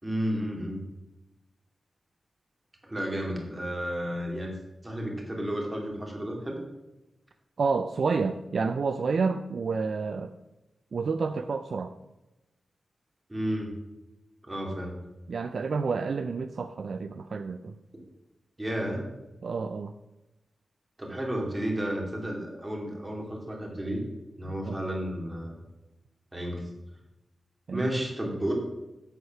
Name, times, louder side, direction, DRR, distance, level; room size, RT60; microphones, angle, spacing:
voice 1, 0.0-0.8 2.8-4.5 4.8-6.6 13.3-13.7 14.4-15.0 18.6-19.0 21.0-24.0 24.4-25.5 26.3-26.6 27.7-28.5, equal, 15° right, 0 dB, 2.4 m, -32 dB
voice 2, 7.6-10.3 10.9-11.9 15.3-17.8 19.4-19.9 24.6-24.8 27.7-27.9, right 4 dB, 55° right, 9 dB, 0.4 m, -29 dB
8.5 x 8.0 x 5.8 m, 1.0 s
wide cardioid pair, 155°, 0 cm